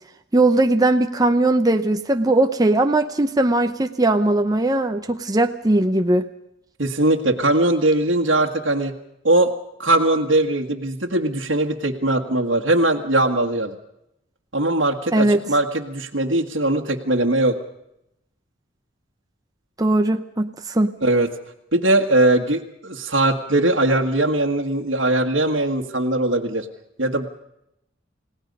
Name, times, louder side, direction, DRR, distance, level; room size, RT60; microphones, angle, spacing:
voice 1, 0.3-6.3 15.1-15.4 19.8-20.9, right 2 dB, 20° right, 6 dB, 0.8 m, -19 dB
voice 2, 6.8-8.9 9.2-9.5 9.8-13.7 14.5-17.6 21.0-21.3 21.7-26.7 27.0-27.3, right 2 dB, 70° right, 2 dB, 1.7 m, -20 dB
29.5 x 17.5 x 5.4 m, 0.82 s
head